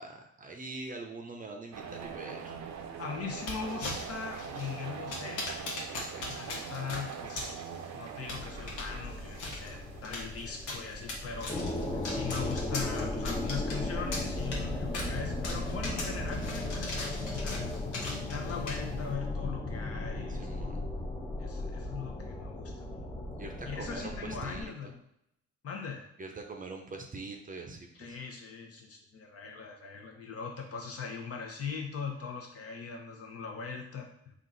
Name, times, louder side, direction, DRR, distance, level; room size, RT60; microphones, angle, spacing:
voice 1, 0.0-2.5 6.1-6.3 20.3-20.8 23.4-24.7 26.2-28.2, right 3 dB, 25° right, 3 dB, 0.6 m, -43 dB
sound 1, 1.7-10.3, right 7 dB, 65° right, 0.6 m, -43 dB
voice 2, 3.0-5.5 6.2-7.7 7.9-11.5 12.0-17.8 18.3-20.5 21.4-22.9 23.6-25.0 25.6-26.1 27.9-34.1, left 6 dB, 50° left, 1 dB, 0.9 m, -40 dB
sound 2, 3.4-19.1, left 2 dB, 80° left, 1.1 m, -41 dB
sound 3, 8.3-24.6, left 2 dB, 15° left, 0.7 m, -36 dB
3.8 x 2.5 x 3.9 m, 0.76 s
cardioid pair, 90°, 30 cm